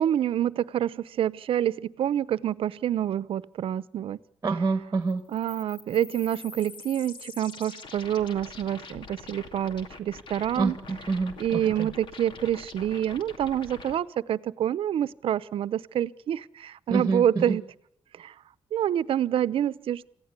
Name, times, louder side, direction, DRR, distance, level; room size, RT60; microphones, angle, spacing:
voice 1, 0.0-4.2 5.3-10.7 11.4-17.6 18.2-18.3 18.7-20.1, right 10 dB, 70° right, 17 dB, 0.8 m, -27 dB
voice 2, 4.4-5.2 10.6-11.9 16.9-17.6, right 4 dB, 25° right, 9 dB, 1.9 m, -27 dB
sound 1, 5.1-14.0, left 4 dB, 55° left, 2.4 m, -45 dB
28.0 x 16.0 x 8.3 m, 0.76 s
cardioid pair, 140°, 10 cm